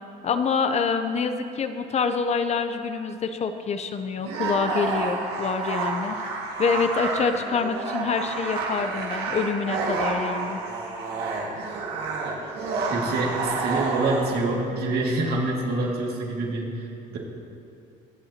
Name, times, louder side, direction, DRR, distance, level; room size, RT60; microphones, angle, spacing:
voice 1, 0.2-6.2 6.6-10.6, left 5 dB, 40° left, 8 dB, 0.6 m, -26 dB
sound 1, 4.2-14.4, right 3 dB, 85° right, 1.9 m, -29 dB
voice 2, 12.9-16.9 17.1-17.2, right 2 dB, 70° right, -2 dB, 2.3 m, -26 dB
22.0 x 7.9 x 2.9 m, 2.5 s
cardioid pair, 110°, 17 cm